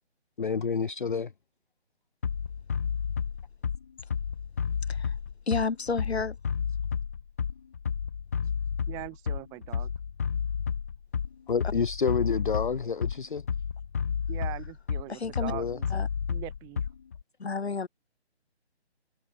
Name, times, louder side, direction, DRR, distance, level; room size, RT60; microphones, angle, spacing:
voice 1, 0.4-1.3 11.5-13.4 15.5-15.8, left 5 dB, 45° left, 0.6 m, -28 dB
Bass drum, 2.2-17.2, left 7 dB, 15° left, 1.0 m, -31 dB
voice 2, 5.5-6.4 15.1-15.5 15.9-16.1 17.4-17.9, left 4 dB, 65° left, 2.2 m, -30 dB
voice 3, 8.9-9.9 14.3-15.9 16.3-16.9, right 23 dB, 10° right, 4.2 m, -41 dB
figure-of-eight pair, 170°, 34 cm